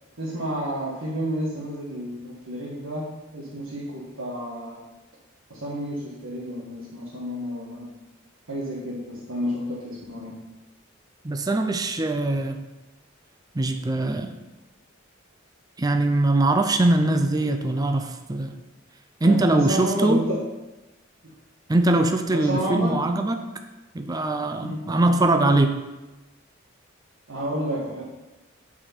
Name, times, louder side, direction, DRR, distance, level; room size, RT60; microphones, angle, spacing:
voice 1, 0.2-4.8 5.5-7.9 8.5-10.4 19.2-20.4 22.3-23.1 24.6-24.8 27.3-28.0, equal, 80° right, -7 dB, 1.7 m, -30 dB
voice 2, 11.2-12.6 13.5-14.3 15.8-18.5 19.2-20.2 21.7-23.4 23.9-25.8, right 2 dB, 20° right, 6 dB, 0.5 m, -22 dB
10.5 x 4.8 x 4.5 m, 1.1 s
head